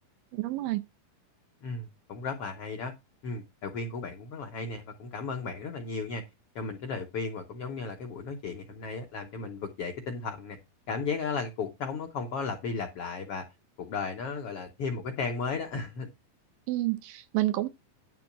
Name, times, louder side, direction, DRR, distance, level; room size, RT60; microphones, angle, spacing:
voice 1, 0.3-0.8 16.7-17.7, right 17 dB, 75° right, 2.4 m, -29 dB
voice 2, 1.6-2.9 3.2-6.2 6.5-10.6 10.9-13.4 13.8-16.1, left 4 dB, 75° left, 1.3 m, -35 dB
10.5 x 3.9 x 7.3 m
omnidirectional pair, 4.2 m